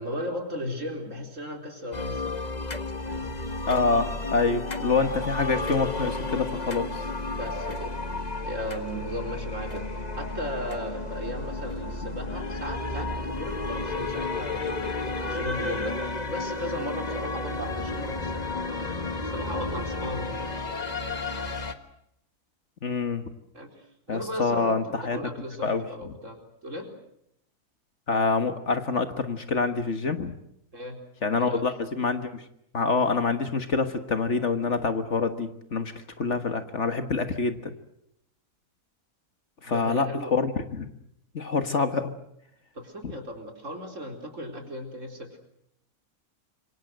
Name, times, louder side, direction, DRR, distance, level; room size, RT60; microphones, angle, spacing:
voice 1, 0.0-2.5 3.1-3.3 7.3-7.9 8.4-20.6 23.5-26.4 26.6-26.9 30.7-31.0 31.4-31.6 39.7-40.3 42.7-45.4, equal, 55° right, 4 dB, 4.5 m, -36 dB
sound 1, 1.9-21.7, left 3 dB, 30° left, 1.6 m, -32 dB
voice 2, 3.7-7.0 22.8-23.2 24.1-25.2 25.6-25.8 28.1-30.3 31.2-32.4 32.7-35.9 36.2-37.7 39.6-40.9 41.3-42.1 43.0-43.1, left 4 dB, 50° left, 9 dB, 1.8 m, -26 dB
27.5 x 24.5 x 7.9 m, 0.75 s
omnidirectional pair, 1.6 m